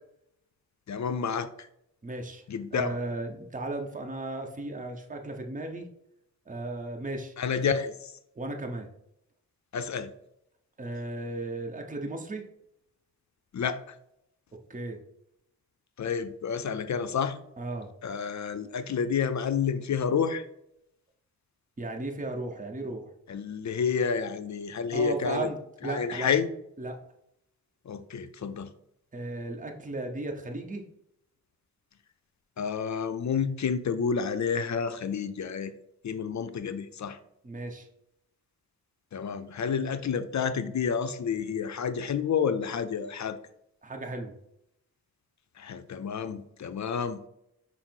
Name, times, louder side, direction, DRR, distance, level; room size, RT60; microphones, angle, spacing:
voice 1, 0.9-1.7 2.5-3.0 7.4-7.9 9.7-10.1 13.5-13.9 16.0-17.4 18.0-20.5 23.3-25.5 25.8-26.5 27.9-28.7 32.6-35.7 36.0-37.2 39.1-43.4 45.6-47.3, left 6 dB, 50° left, 11 dB, 0.5 m, -29 dB
voice 2, 2.0-2.4 2.7-5.9 6.5-7.3 7.7-7.8 8.4-8.9 10.8-12.4 14.7-15.0 17.6-17.9 21.8-23.1 24.9-26.3 26.8-27.0 29.1-30.8 37.4-37.9 43.8-44.3, right 2 dB, 20° right, 3 dB, 0.9 m, -35 dB
5.8 x 2.0 x 4.4 m, 0.78 s
cardioid pair, 50°, 38 cm